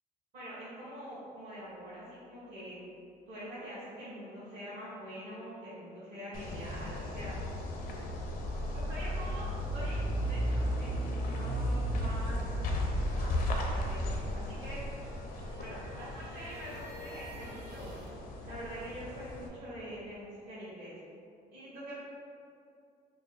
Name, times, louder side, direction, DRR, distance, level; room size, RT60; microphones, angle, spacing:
voice 1, 0.3-2.8 3.3-7.4 8.7-12.4 13.0-14.8 15.6-17.9 18.4-21.0 21.5-21.9, equal, 55° right, -11 dB, 1.2 m, -45 dB
sound 1, 6.3-19.5, left 1 dB, 60° left, 0.5 m, -38 dB
sound 2, 7.9-15.4, right 1 dB, 15° right, 0.3 m, -35 dB
sound 3, 14.5-18.2, right 1 dB, 80° right, 0.5 m, -52 dB
3.0 x 2.1 x 3.9 m, 2.4 s
cardioid pair, 110°, 17 cm